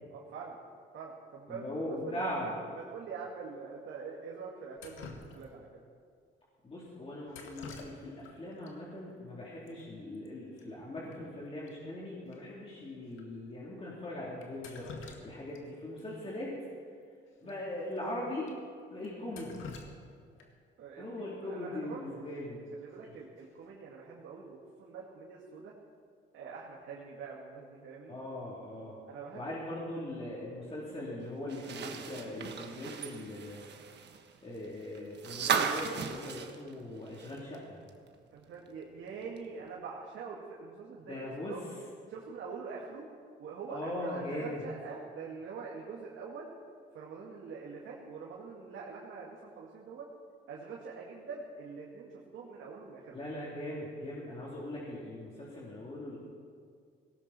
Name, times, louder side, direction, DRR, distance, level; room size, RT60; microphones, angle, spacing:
voice 1, 0.1-0.6 0.9-5.7 17.4-17.6 20.8-22.3 22.8-25.7 26.3-28.2 29.1-29.5 31.9-32.1 38.3-41.6 42.1-43.1 43.4-46.5 46.9-50.1 50.5-53.3, right 5 dB, 80° right, -4 dB, 2.2 m, -44 dB
voice 2, 1.5-2.5 6.6-16.5 17.4-18.5 18.9-19.6 21.0-22.6 28.1-29.0 29.3-33.6 34.4-37.8 41.1-41.6 43.7-44.6 53.1-56.2, left 1 dB, 30° left, -6 dB, 3.6 m, -40 dB
Drip, 4.8-5.8 7.3-8.3 8.6-8.7 9.7-9.8 10.0-10.3 10.6-10.7 11.1-11.2 11.7-11.8 12.3-12.4 13.1-13.2 14.4-15.6 16.0-16.1 17.4-17.5 17.9-18.0 18.5-18.6 19.0-20.7 22.7-23.0 23.4-23.8, left 4 dB, 85° left, 1.9 m, -48 dB
sound 1, 31.5-37.6 37.9-38.0 39.4-39.5, right 6 dB, 60° right, 1.3 m, -36 dB
18.0 x 17.5 x 4.4 m, 2.1 s
cardioid pair, 90°, 20 cm